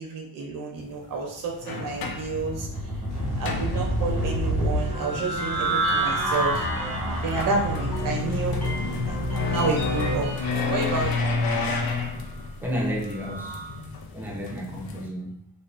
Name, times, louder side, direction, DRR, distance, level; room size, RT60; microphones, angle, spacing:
voice 1, 0.0-2.7 3.4-6.6 7.2-8.6 9.0-10.3 10.6-11.3, right 3 dB, 65° right, 0 dB, 0.5 m, -30 dB
sound 1, 0.8-0.9 1.5-4.4 5.7-15.1, left 4 dB, 85° left, 0.5 m, -31 dB
sound 2, 1.9-13.8, right 1 dB, 85° right, 0.8 m, -30 dB
sound 3, 3.1-10.5, right 1 dB, 50° left, 0.9 m, -34 dB
voice 2, 12.6-13.6 14.1-15.5, equal, 5° right, -2 dB, 0.3 m, -31 dB
2.4 x 2.3 x 2.3 m, 0.70 s
wide cardioid pair, 180°, 36 cm